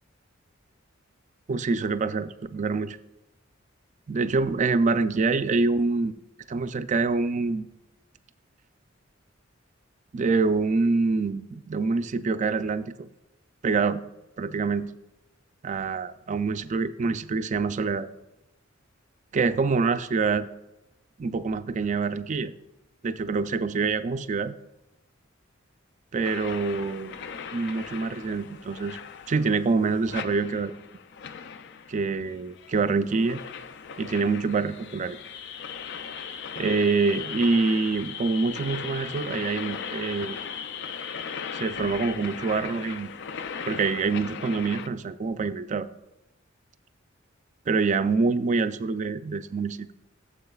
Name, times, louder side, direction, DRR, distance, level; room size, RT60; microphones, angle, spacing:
voice 1, 1.5-3.0 4.1-6.1 6.5-7.7 10.1-12.9 13.6-14.0 14.4-14.9 15.6-18.1 19.3-20.5 21.2-22.5 23.0-24.5 26.1-27.1 27.5-29.0 29.3-30.7 31.9-33.4 34.0-35.2 36.6-40.4 41.5-43.1 43.7-45.9 47.7-49.9, right 4 dB, 40° right, 11 dB, 0.4 m, -26 dB
sound 1, 26.2-44.9, left 6 dB, 60° left, 0.5 m, -38 dB
13.5 x 7.3 x 2.3 m, 0.94 s
head